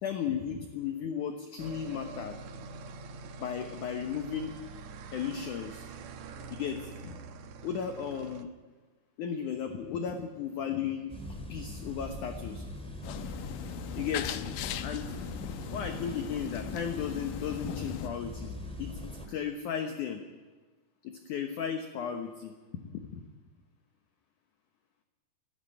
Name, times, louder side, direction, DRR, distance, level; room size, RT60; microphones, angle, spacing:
voice 1, 0.0-2.4 3.4-4.5 5.1-5.9 6.5-7.2 7.6-8.5 9.2-11.1 11.5-12.6 14.0-14.4 14.8-15.2 15.4-18.5 18.8-20.2 21.0-23.2, left 7 dB, 65° left, 6 dB, 2.1 m, -35 dB
sound 1, 1.6-8.4, right 4 dB, 75° right, 1.5 m, -45 dB
sound 2, 11.1-19.3, left 1 dB, ahead, 1.8 m, -41 dB
sound 3, 13.0-18.1, left 10 dB, 85° left, 1.9 m, -39 dB
17.0 x 16.0 x 9.9 m, 1.3 s
omnidirectional pair, 5.0 m